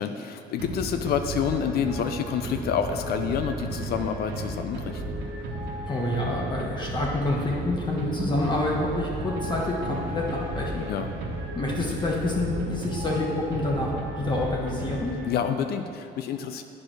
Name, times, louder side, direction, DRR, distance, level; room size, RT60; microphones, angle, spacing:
voice 1, 0.0-5.0 10.8-11.1 15.3-16.6, left 7 dB, 65° left, 7 dB, 0.5 m, -28 dB
sound 1, 0.6-15.6, right 1 dB, 85° right, 1.3 m, -34 dB
sound 2, 4.3-12.4 12.8-12.9, right 1 dB, 70° right, 1.7 m, -46 dB
voice 2, 5.9-10.8 11.5-13.9 14.2-15.1, left 2 dB, 25° left, -3 dB, 1.2 m, -27 dB
8.4 x 4.9 x 6.1 m, 2.4 s
cardioid pair, 110°, 17 cm